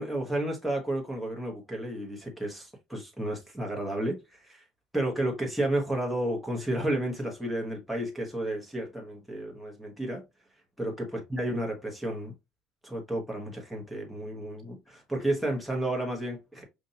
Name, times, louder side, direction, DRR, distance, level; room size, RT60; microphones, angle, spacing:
voice 1, 0.0-4.6 4.9-10.2 10.8-12.3 12.8-16.6, right 1 dB, ahead, 1.1 m, -32 dB
5.2 x 2.6 x 2.7 m
cardioid pair, 160°, 0 cm